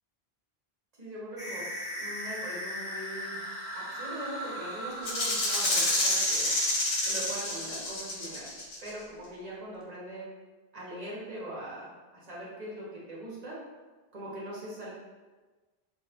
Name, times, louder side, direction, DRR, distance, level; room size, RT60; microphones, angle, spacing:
voice 1, 1.0-1.7 2.0-3.4 3.7-6.5 7.1-8.5 8.8-10.3 10.7-11.9 12.3-13.6 14.1-14.9, right 1 dB, 40° right, -6 dB, 1.0 m, -41 dB
sound 1, 1.4-6.3, equal, 5° right, 1.0 m, -38 dB
Rattle (instrument), 5.0-8.9, left 1 dB, 45° left, 0.5 m, -28 dB
3.1 x 2.7 x 2.7 m, 1.3 s
omnidirectional pair, 1.1 m